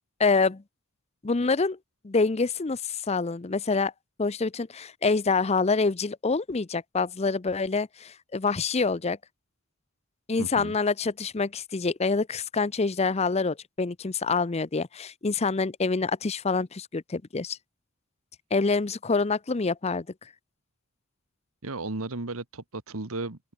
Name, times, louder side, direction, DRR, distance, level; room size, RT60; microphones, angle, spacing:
voice 1, 0.2-0.6 1.2-1.8 2.0-3.9 4.2-9.2 10.3-17.6 18.5-20.1, left 4 dB, 30° left, 0.6 m, -26 dB
voice 2, 10.4-10.8 21.6-23.4, right 2 dB, 75° right, 1.6 m, -34 dB
open air
head